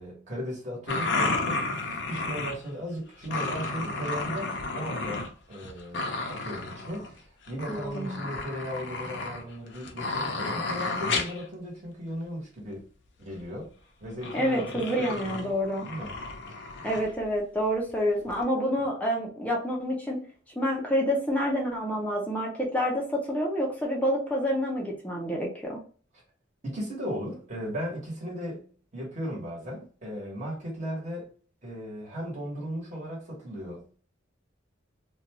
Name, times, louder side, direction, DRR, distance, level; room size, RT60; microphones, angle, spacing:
voice 1, 0.0-12.9 13.2-13.7 14.0-15.5 15.8-16.1 16.5-16.9 26.6-31.3 31.6-34.0, equal, 35° right, 1.3 m, -37 dB
sound 1, 0.9-2.7 3.2-5.3 5.5-7.1 7.5-11.4 13.3-13.4 14.2-17.1 17.9-18.0 18.3-18.4, left 3 dB, 65° left, 0.5 m, -32 dB
voice 2, 7.7-8.3 14.3-15.9 16.8-20.2 20.6-25.8, equal, 10° left, 0.5 m, -28 dB
2.6 x 2.3 x 2.9 m
head